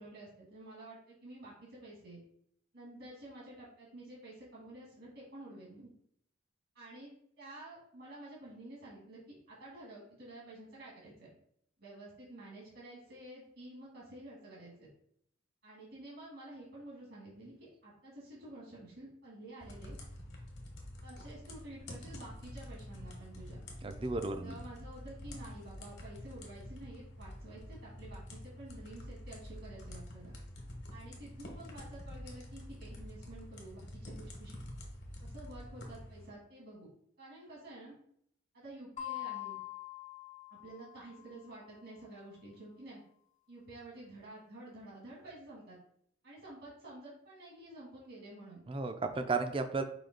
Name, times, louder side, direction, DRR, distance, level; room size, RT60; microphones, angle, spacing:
voice 1, 0.0-2.2 2.7-5.9 6.7-11.3 11.8-14.9 15.6-20.0 21.0-23.6 24.4-30.3 30.9-34.6 35.2-36.9 37.2-37.9 38.5-39.6 40.5-43.0 43.5-45.8 46.2-48.6, right 1 dB, 70° right, -5 dB, 1.6 m, -50 dB
sound 1, 19.6-36.3, left 1 dB, 60° left, 1.2 m, -47 dB
voice 2, 23.8-24.6 48.7-49.8, right 3 dB, 30° right, 8 dB, 0.4 m, -34 dB
sound 2, 39.0-41.5, left 14 dB, 40° left, 0.5 m, -44 dB
5.0 x 2.8 x 3.9 m, 0.67 s
head